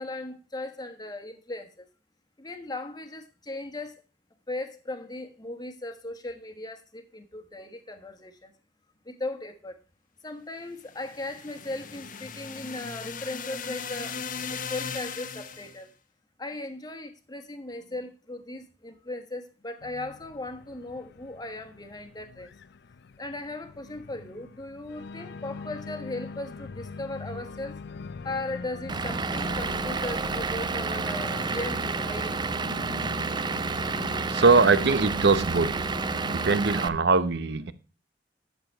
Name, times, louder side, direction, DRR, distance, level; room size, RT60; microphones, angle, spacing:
voice 1, 0.0-1.8 2.4-4.0 4.5-8.5 9.0-9.8 10.2-14.2 14.5-15.9 16.4-22.5 23.2-27.8 28.2-32.6, left 2 dB, 20° left, 1.3 m, -37 dB
sound 1, 10.9-15.8, left 6 dB, 50° left, 0.9 m, -37 dB
Organ, 19.8-36.6, left 4 dB, 65° left, 0.5 m, -41 dB
Vehicle / Engine, 28.9-36.9, right 4 dB, 25° right, 0.5 m, -30 dB
voice 2, 34.3-35.9 36.3-37.7, right 4 dB, 65° right, 0.8 m, -22 dB
10.5 x 6.9 x 4.5 m
head